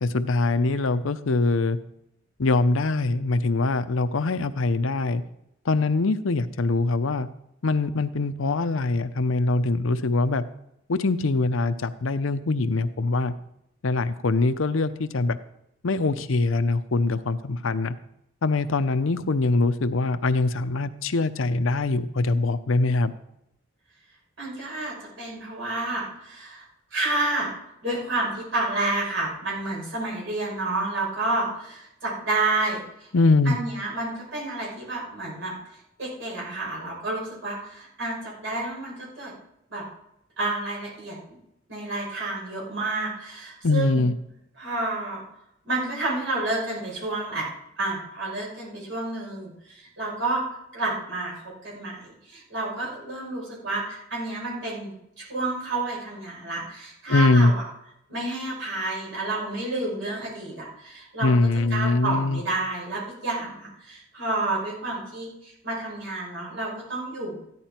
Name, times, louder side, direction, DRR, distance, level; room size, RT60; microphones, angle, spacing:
voice 1, 0.0-1.8 2.4-5.2 5.7-7.3 7.6-10.4 10.9-13.3 13.8-15.4 15.8-17.9 18.4-23.1 33.1-33.6 43.6-44.1 57.1-57.5 61.2-62.4, left 3 dB, 75° left, 11 dB, 0.7 m, -23 dB
voice 2, 24.4-26.6 26.9-27.5 27.8-33.1 33.5-35.5 36.0-39.3 39.7-39.8 40.4-41.4 41.7-44.1 44.6-45.2 45.6-47.5 47.8-50.4 50.7-57.6 58.1-61.3 61.7-67.4, right 2 dB, 65° right, -3 dB, 6.1 m, -30 dB
14.0 x 11.0 x 4.4 m, 0.79 s
head